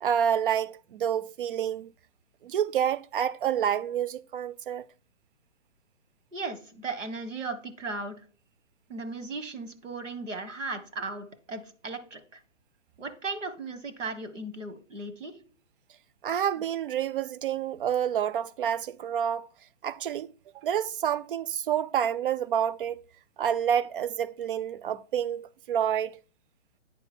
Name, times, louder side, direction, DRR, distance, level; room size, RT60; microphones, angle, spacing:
voice 1, 0.0-1.9 2.4-4.9 16.2-19.5 19.8-23.0 23.4-26.2, right 9 dB, 50° right, 0.4 m, -28 dB
voice 2, 6.3-8.2 8.9-12.4 13.0-15.3, right 3 dB, 90° right, 1.6 m, -36 dB
9.0 x 5.1 x 4.3 m
hypercardioid pair, 140°, 36 cm